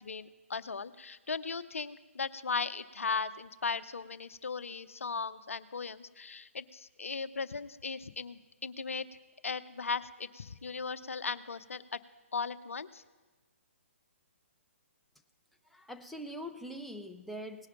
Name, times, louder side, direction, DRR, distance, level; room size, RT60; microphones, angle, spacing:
voice 1, 0.0-9.1 9.4-12.0 12.3-13.0, left 5 dB, 75° left, 14 dB, 0.6 m, -37 dB
voice 2, 15.7-17.7, equal, ahead, 4 dB, 0.6 m, -43 dB
18.5 x 10.5 x 5.8 m, 1.2 s
figure-of-eight pair, 135°, 7 cm